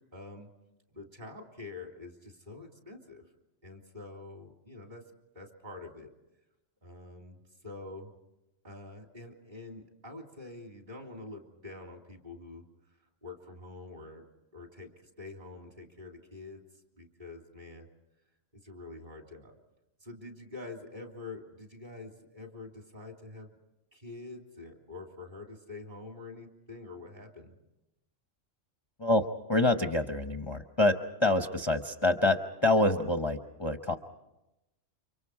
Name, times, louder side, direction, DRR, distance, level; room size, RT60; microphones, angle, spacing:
voice 1, 0.1-0.5 0.9-3.2 3.6-5.0 5.3-6.1 6.8-8.2 8.6-12.6 13.2-14.3 14.5-16.6 16.9-17.9 18.5-19.5 20.0-23.6 23.9-27.6, left 3 dB, 40° right, 2 dB, 3.2 m, -46 dB
voice 2, 29.0-30.9 31.2-34.0, left 2 dB, 25° left, 5 dB, 0.8 m, -26 dB
30.0 x 25.5 x 4.8 m, 0.93 s
omnidirectional pair, 1.3 m